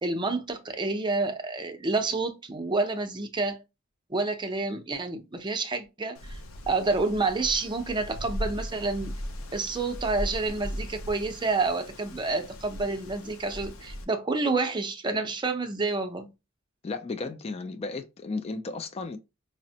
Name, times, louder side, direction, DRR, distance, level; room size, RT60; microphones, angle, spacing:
voice 1, 0.0-3.6 4.1-6.4 6.7-9.1 9.5-16.3, right 3 dB, 20° right, 0.5 m, -29 dB
Wind, 6.1-14.0, equal, 85° left, 0.6 m, -38 dB
voice 2, 16.8-19.2, left 3 dB, 30° left, 0.3 m, -34 dB
5.0 x 2.1 x 2.7 m
head